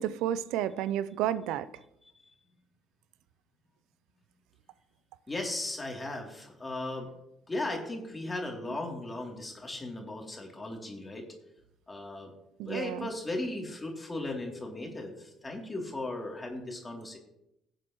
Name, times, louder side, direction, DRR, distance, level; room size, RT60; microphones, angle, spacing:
voice 1, 0.0-1.7 12.6-13.1, right 11 dB, 70° right, 0.5 m, -31 dB
voice 2, 5.3-7.1 7.5-11.3 11.9-12.3 12.6-17.2, left 2 dB, 20° left, 3.1 m, -37 dB
19.0 x 7.5 x 3.1 m
hypercardioid pair, 60°, 0 cm